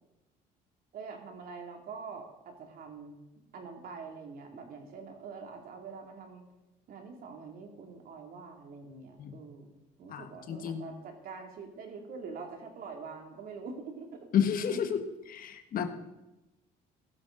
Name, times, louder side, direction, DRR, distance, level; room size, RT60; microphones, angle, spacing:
voice 1, 0.9-3.2 3.5-6.5 6.9-9.7 10.0-14.8, right 5 dB, 60° right, 3 dB, 2.6 m, -45 dB
voice 2, 10.1-10.9 14.3-15.0 15.3-15.9, left 8 dB, 55° left, 8 dB, 1.3 m, -31 dB
15.5 x 12.5 x 3.9 m, 0.99 s
cardioid pair, 110°, 17 cm